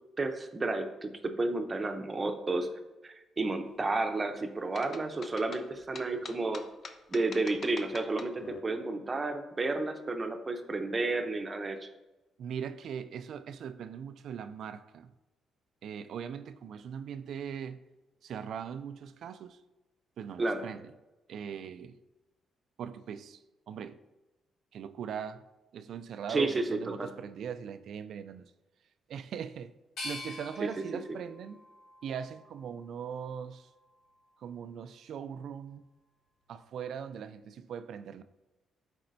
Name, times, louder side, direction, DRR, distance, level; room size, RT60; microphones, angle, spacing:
voice 1, 0.2-2.7 3.0-6.6 7.1-11.9 20.4-20.7 26.3-27.1 30.6-30.8, right 3 dB, 30° right, 0.7 m, -31 dB
sound 1, 4.7-8.6, left 5 dB, 50° left, 0.6 m, -45 dB
voice 2, 12.4-15.1 15.8-17.8 18.2-19.6 20.2-20.8 21.3-22.0 22.8-23.4 23.7-24.0 24.7-25.4 25.7-28.5 29.1-29.7 30.0-31.6 32.0-33.7 34.4-35.9 36.5-38.2, right 7 dB, 70° right, 0.3 m, -40 dB
sound 2, 30.0-32.9 33.4-34.3, left 2 dB, 75° left, 1.7 m, -46 dB
10.5 x 4.2 x 2.6 m
cardioid pair, 90°, 0 cm